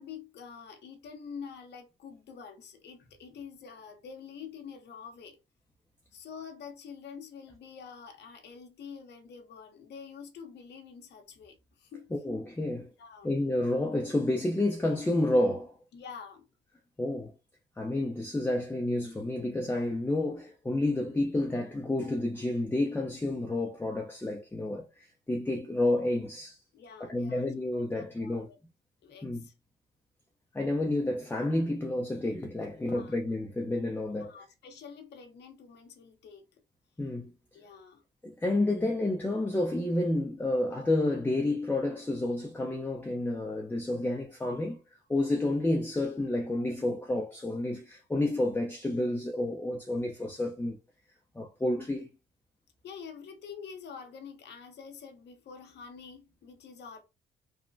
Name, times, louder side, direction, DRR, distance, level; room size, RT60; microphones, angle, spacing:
voice 1, 0.0-5.4 6.1-12.1 13.0-13.3 15.9-16.5 26.7-27.5 27.9-28.6 29.0-29.5 32.9-33.2 34.2-36.5 37.5-38.0 52.8-57.0, left 6 dB, 60° left, 0.7 m, -47 dB
voice 2, 12.1-12.9 13.2-15.7 17.0-17.3 17.8-26.6 27.1-28.5 29.2-29.5 30.5-34.3 37.0-37.3 38.2-44.8 45.1-50.8 51.3-52.1, left 1 dB, 10° left, 0.5 m, -30 dB
3.1 x 2.1 x 2.5 m
cardioid pair, 90°, 20 cm